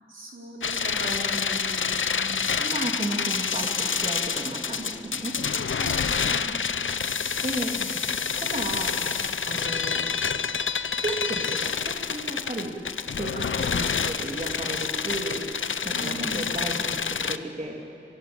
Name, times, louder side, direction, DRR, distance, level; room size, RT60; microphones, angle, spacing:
voice 1, 0.1-2.8 5.8-6.5 7.7-7.9 15.9-16.4, right 1 dB, 85° right, -2 dB, 4.5 m, -38 dB
sound 1, 0.6-17.4, left 6 dB, 85° left, 0.7 m, -28 dB
voice 2, 2.6-5.3 7.4-7.7 8.3-9.0 9.5-10.1 10.8-12.7 13.1-15.4 15.8-17.8, right 2 dB, 40° right, 0 dB, 2.8 m, -34 dB
23.0 x 22.5 x 8.8 m, 2.9 s
wide cardioid pair, 65°, 20 cm